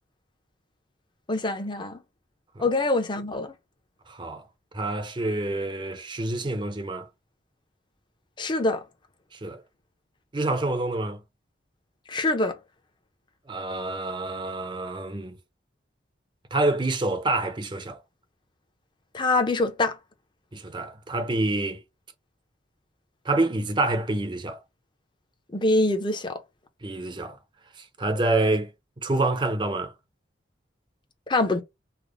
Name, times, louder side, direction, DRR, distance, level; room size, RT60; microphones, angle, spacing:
voice 1, 1.3-2.0 2.6-3.5 8.4-8.8 12.1-12.6 19.1-20.0 25.5-26.4 31.3-31.6, left 2 dB, 25° left, 0.6 m, -24 dB
voice 2, 4.1-4.4 4.7-7.1 9.3-9.6 10.3-11.2 13.5-15.4 16.5-18.0 20.5-21.8 23.3-24.6 26.8-27.4 27.8-28.7 29.0-29.9, right 2 dB, 25° right, 0.5 m, -27 dB
3.3 x 2.1 x 3.7 m
head